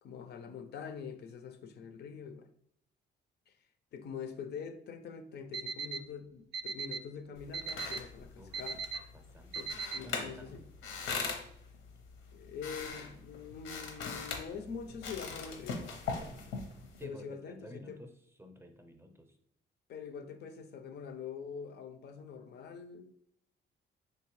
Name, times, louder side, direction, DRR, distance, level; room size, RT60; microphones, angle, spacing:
voice 1, 0.0-2.5 3.5-3.6 3.9-8.8 9.5-10.6 12.3-15.9 17.0-18.0 19.9-23.1, left 6 dB, 55° left, 0.4 m, -44 dB
Alarm, 5.5-6.0 6.5-7.0 7.5-8.0 8.5-9.0 9.5-10.0, right 5 dB, 65° right, 0.4 m, -37 dB
sound 1, 7.3-17.0, left 4 dB, 85° left, 0.7 m, -42 dB
voice 2, 9.1-9.6 10.0-10.7 16.9-18.1 18.4-19.4, equal, 10° right, 0.5 m, -52 dB
3.6 x 2.7 x 3.0 m
cardioid pair, 90°, 20 cm